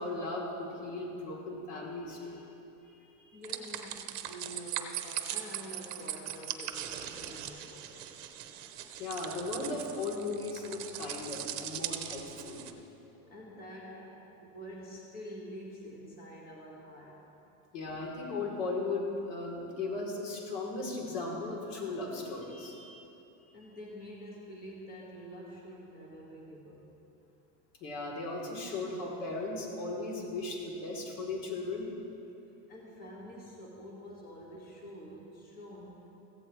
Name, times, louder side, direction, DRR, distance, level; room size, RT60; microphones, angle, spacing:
voice 1, 0.0-3.1 9.0-12.6 17.7-23.0 23.4-23.5 27.8-31.9, left 3 dB, 90° left, -2 dB, 3.4 m, -37 dB
voice 2, 3.3-8.3 13.2-17.2 23.5-26.9 32.7-36.0, equal, 25° left, -3 dB, 1.7 m, -47 dB
sound 1, 3.4-12.7, right 11 dB, 45° right, 0.8 m, -40 dB
16.5 x 15.0 x 3.2 m, 2.9 s
cardioid pair, 175°, 37 cm